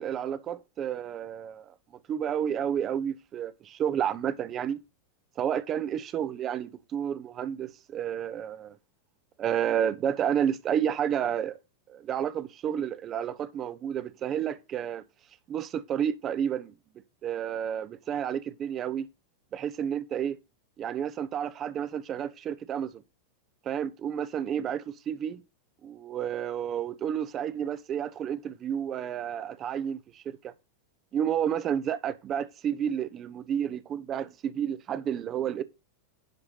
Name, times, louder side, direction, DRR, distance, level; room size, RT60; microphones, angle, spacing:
voice 1, 0.0-1.7 2.1-4.8 5.4-8.8 9.4-11.6 11.9-15.0 15.5-16.7 17.2-19.1 19.5-20.4 20.8-23.0 23.6-25.4 25.8-30.5 31.1-35.6, right 9 dB, 30° right, 0.9 m, -31 dB
10.5 x 4.7 x 5.8 m
figure-of-eight pair, 90°, 0 cm